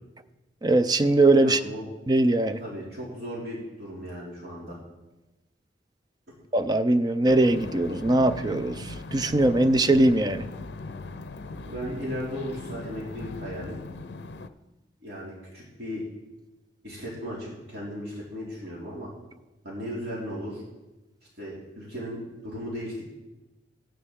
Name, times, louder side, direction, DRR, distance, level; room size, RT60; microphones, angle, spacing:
voice 1, 0.6-1.6 2.1-2.6 6.5-8.8 9.1-10.4, right 2 dB, 20° right, 11 dB, 0.4 m, -21 dB
voice 2, 1.4-1.9 2.6-4.8 11.6-13.8 15.0-16.0 16.8-19.1 19.6-20.6 21.4-23.0, equal, 65° right, -5 dB, 2.8 m, -36 dB
sound 1, 7.2-14.5, left 2 dB, 70° left, 0.6 m, -39 dB
15.0 x 9.6 x 3.7 m, 1.1 s
head